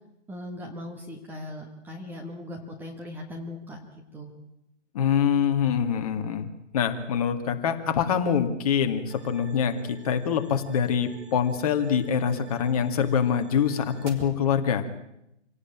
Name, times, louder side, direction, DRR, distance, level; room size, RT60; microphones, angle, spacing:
voice 1, 0.3-3.8 4.1-4.3, left 1 dB, 5° right, 1 dB, 1.4 m, -39 dB
voice 2, 4.9-6.5 6.7-14.9, left 7 dB, 30° left, 8 dB, 2.1 m, -25 dB
sound 1, 9.1-14.1, right 4 dB, 65° right, 5.4 m, -46 dB
27.0 x 17.5 x 8.8 m, 0.84 s
figure-of-eight pair, 150°, 37 cm